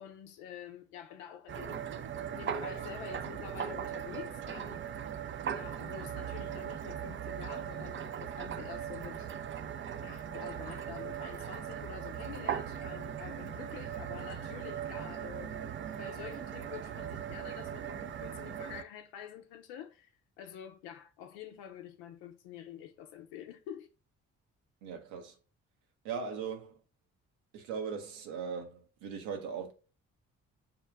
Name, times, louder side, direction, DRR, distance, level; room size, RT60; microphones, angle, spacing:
voice 1, 0.0-1.8 2.3-4.9 5.5-9.3 10.0-20.1 20.4-23.9, left 9 dB, 80° left, 0.6 m, -47 dB
sound 1, 1.5-18.8, right 8 dB, 35° right, 0.4 m, -39 dB
voice 2, 24.8-25.4 26.0-26.8 27.5-29.7, right 6 dB, 80° right, 0.8 m, -39 dB
5.5 x 2.2 x 3.3 m
hypercardioid pair, 45°, 38 cm